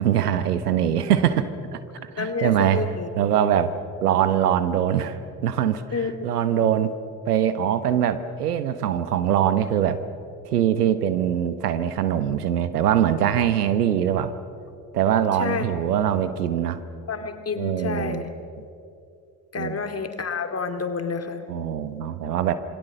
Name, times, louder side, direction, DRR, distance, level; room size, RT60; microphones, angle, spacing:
voice 1, 0.0-1.8 2.1-2.9 3.1-3.7 4.0-6.9 7.3-10.0 10.5-14.3 14.9-16.8 17.6-18.2 19.6-19.8 21.5-22.5, right 10 dB, 80° right, 13 dB, 1.0 m, -23 dB
voice 2, 2.2-3.1 5.9-6.1 6.5-6.6 15.4-15.7 17.1-18.3 19.5-21.4, left 5 dB, 30° left, 7 dB, 2.4 m, -29 dB
27.0 x 23.0 x 6.6 m, 2.5 s
figure-of-eight pair, 45°, 46 cm